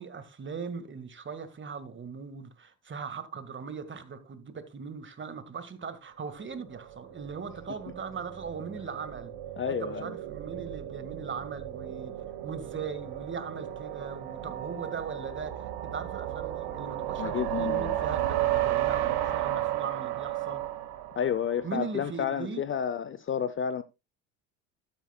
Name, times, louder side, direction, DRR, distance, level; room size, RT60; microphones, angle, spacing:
voice 1, 0.0-9.3 9.7-12.1 12.4-20.6 21.6-22.6, right 5 dB, 25° right, 1.8 m, -39 dB
sound 1, 6.6-21.8, right 13 dB, 60° right, 1.9 m, -33 dB
voice 2, 9.6-10.1 17.2-17.9 21.1-23.8, left 8 dB, 30° left, 0.6 m, -30 dB
12.5 x 9.4 x 2.3 m
supercardioid pair, 90°, 43 cm